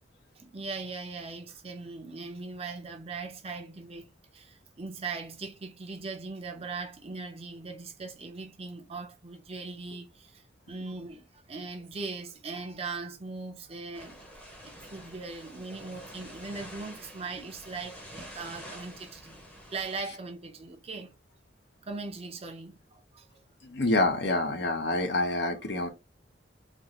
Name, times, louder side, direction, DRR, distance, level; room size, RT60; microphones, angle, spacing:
voice 1, 0.4-14.2 14.6-19.4 19.7-21.2 21.8-23.3, right 4 dB, 35° right, 0.6 m, -40 dB
sound 1, 13.9-20.0, equal, 10° left, 0.8 m, -47 dB
voice 2, 23.6-25.9, left 2 dB, 65° left, 0.7 m, -27 dB
3.5 x 2.4 x 2.9 m
head